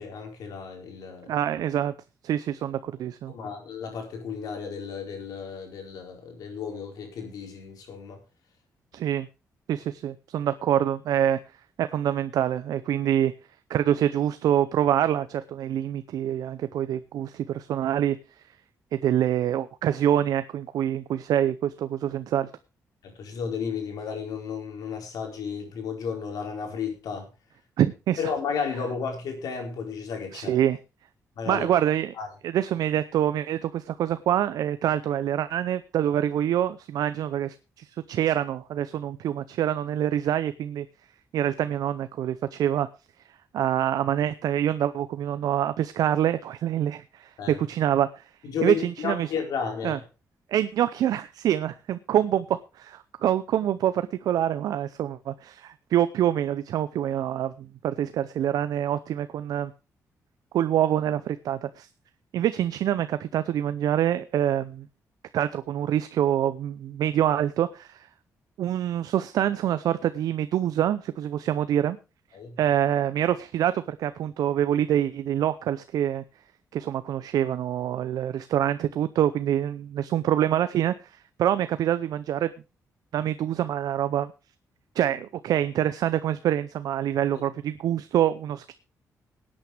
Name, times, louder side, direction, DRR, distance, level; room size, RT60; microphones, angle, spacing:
voice 1, 0.0-1.3 3.3-8.2 23.0-27.3 28.2-30.6 31.4-31.7 32.2-32.3 47.4-47.6 48.4-50.0 72.3-72.6, left 6 dB, 80° left, 2 dB, 4.6 m, -33 dB
voice 2, 1.3-1.9 2.2-3.3 8.9-9.3 9.7-11.4 11.8-13.3 13.7-18.2 18.9-22.5 27.8-28.2 30.3-30.8 31.5-32.1 32.4-40.9 41.3-42.9 43.5-48.2 48.6-49.3 49.8-50.0 50.5-59.7 60.5-61.9 62.3-64.9 65.3-68.1 68.6-72.0 72.6-76.2 76.7-82.5 83.1-84.3 85.0-88.7, right 11 dB, 80° right, 12 dB, 0.6 m, -26 dB
19.0 x 8.9 x 3.4 m, 0.30 s
cardioid pair, 95°, 6 cm